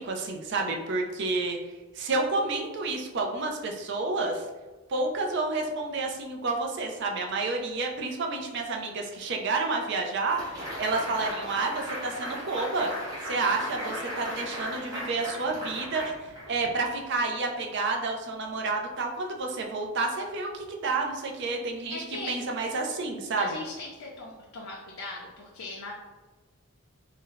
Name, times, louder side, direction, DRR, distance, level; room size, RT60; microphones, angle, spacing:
voice 1, 0.0-1.6 2.0-4.4 4.9-12.9 13.2-23.5, right 3 dB, 55° right, 2 dB, 0.5 m, -30 dB
sound 1, 10.4-16.8, equal, 15° right, 1.3 m, -37 dB
voice 2, 21.9-22.3 23.4-25.9, left 2 dB, 70° left, -3 dB, 0.5 m, -39 dB
2.6 x 2.1 x 3.8 m, 1.3 s
head